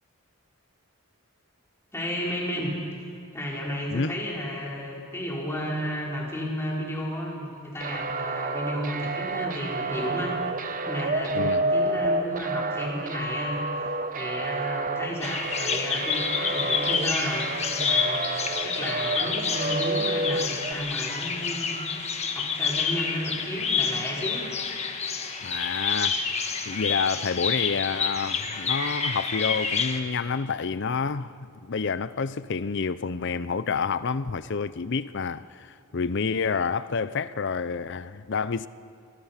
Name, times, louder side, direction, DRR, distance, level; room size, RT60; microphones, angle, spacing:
voice 1, 1.9-3.0 3.3-13.6 14.1-21.8 22.3-24.5, equal, 10° left, 4.3 m, -33 dB
sound 1, 7.8-20.7, right 2 dB, 35° right, 0.9 m, -29 dB
Bird vocalization bird call bird song, 15.2-30.0, left 5 dB, 30° left, 1.3 m, -28 dB
voice 2, 25.4-26.3 26.7-38.7, left 5 dB, 50° left, 0.6 m, -29 dB
27.0 x 21.5 x 5.8 m
head